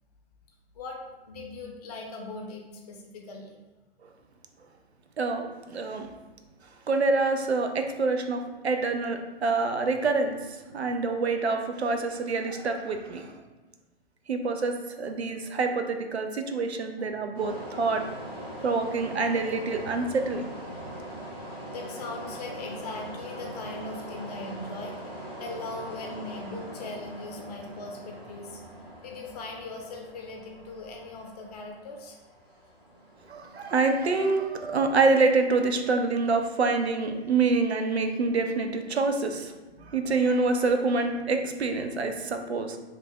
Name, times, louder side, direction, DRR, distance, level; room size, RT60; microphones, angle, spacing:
voice 1, 1.3-3.5 18.3-18.9 21.7-28.6 29.0-32.2 39.7-40.3 41.1-41.2, left 2 dB, 40° left, 1 dB, 0.7 m, -40 dB
voice 2, 5.2-6.1 6.9-13.3 14.3-18.1 18.6-20.5 33.3-39.5 39.9-42.8, right 3 dB, 85° right, 6 dB, 0.5 m, -26 dB
sound 1, 17.3-35.0, right 1 dB, 15° right, 1.2 m, -42 dB
3.1 x 2.4 x 3.5 m, 1.2 s
figure-of-eight pair, 120°, 31 cm